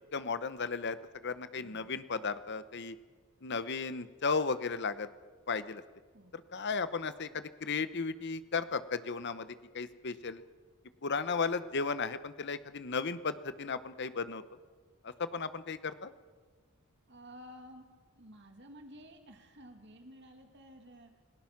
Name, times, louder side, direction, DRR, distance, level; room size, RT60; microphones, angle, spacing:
voice 1, 0.1-3.0 3.4-5.1 5.5-5.8 6.3-10.4 11.0-14.4 15.0-16.1, left 4 dB, 50° left, 13 dB, 0.9 m, -35 dB
voice 2, 1.6-1.9 6.1-6.4 17.1-21.2, equal, 55° right, 5 dB, 2.3 m, -53 dB
29.0 x 18.0 x 6.0 m, 1.4 s
head